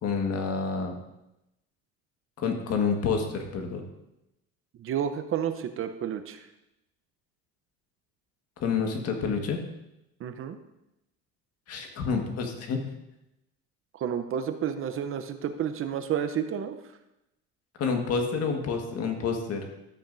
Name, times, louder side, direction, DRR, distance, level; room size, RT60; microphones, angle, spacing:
voice 1, 0.0-0.9 2.4-3.8 8.6-9.6 11.7-12.8 17.8-19.6, left 5 dB, 55° left, 3 dB, 1.6 m, -28 dB
voice 2, 4.8-6.5 10.2-10.6 13.9-16.8, right 9 dB, 45° right, 9 dB, 0.7 m, -30 dB
12.5 x 8.6 x 2.6 m, 0.89 s
cardioid pair, 110°, 30 cm